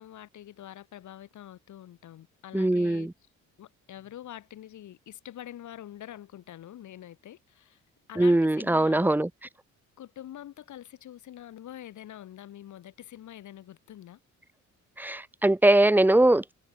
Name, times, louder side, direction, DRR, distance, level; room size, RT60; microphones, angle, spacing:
voice 1, 0.0-3.1 3.6-7.8 8.1-9.2 10.0-14.2, left 12 dB, 75° left, 5.4 m, -45 dB
voice 2, 2.5-3.1 8.2-9.3 15.0-16.5, right 1 dB, 5° right, 0.8 m, -21 dB
cardioid pair, 90°, 30 cm